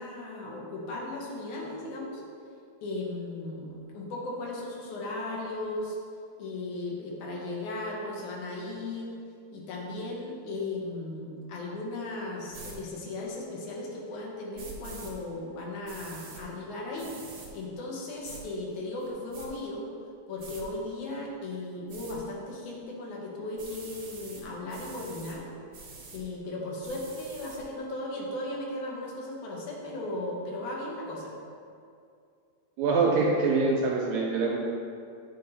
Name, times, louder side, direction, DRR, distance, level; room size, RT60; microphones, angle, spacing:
voice 1, 0.0-2.2 2.8-6.0 6.4-9.1 9.5-17.1 17.5-19.9 20.3-25.5 26.1-31.3, left 2 dB, 70° left, -3 dB, 2.5 m, -36 dB
sound 1, 12.5-12.7 14.5-15.1 15.8-16.4 17.0-17.5 18.2-18.4 19.0-19.5 20.4-20.6 21.9-22.2 23.6-24.4 24.7-25.3 25.7-26.2 26.8-27.6, right 3 dB, 60° right, 1.2 m, -45 dB
voice 2, 32.8-34.6, right 3 dB, 80° right, -2 dB, 1.7 m, -24 dB
9.2 x 4.2 x 4.1 m, 2.4 s
omnidirectional pair, 3.7 m